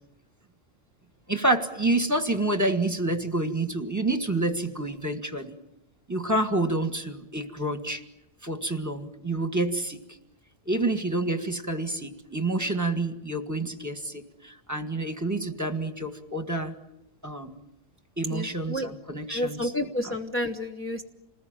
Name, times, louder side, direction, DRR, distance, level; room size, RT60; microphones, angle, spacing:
voice 1, 1.3-5.6 6.1-8.0 8.4-10.0 10.7-16.7 17.2-17.6 18.2-19.7, right 2 dB, 15° right, 7 dB, 1.7 m, -28 dB
voice 2, 18.3-18.9 19.3-21.0, left 1 dB, 10° left, 4 dB, 1.0 m, -30 dB
28.0 x 20.5 x 9.1 m, 0.90 s
omnidirectional pair, 1.3 m